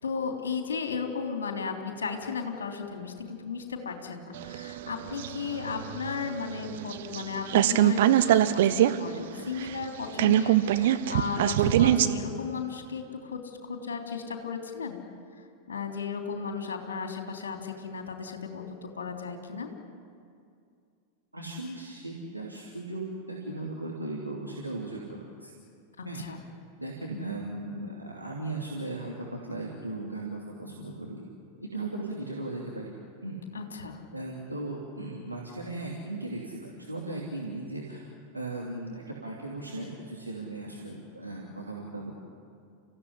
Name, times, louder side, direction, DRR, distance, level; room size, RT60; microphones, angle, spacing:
voice 1, 0.0-15.0 15.7-19.7 26.0-26.4 33.5-34.0, left 5 dB, 70° left, 3 dB, 3.3 m, -35 dB
sound 1, 4.4-7.2 7.5-8.9 9.2-9.3 9.6-12.1, right 12 dB, 55° right, 1.1 m, -23 dB
voice 2, 11.8-12.4 21.3-25.5 26.0-26.2 26.8-31.3 31.6-33.0 33.2-33.4 34.1-42.1, right 2 dB, 85° right, -3 dB, 2.9 m, -37 dB
29.5 x 15.5 x 10.0 m, 2.3 s
figure-of-eight pair, 90°, 0 cm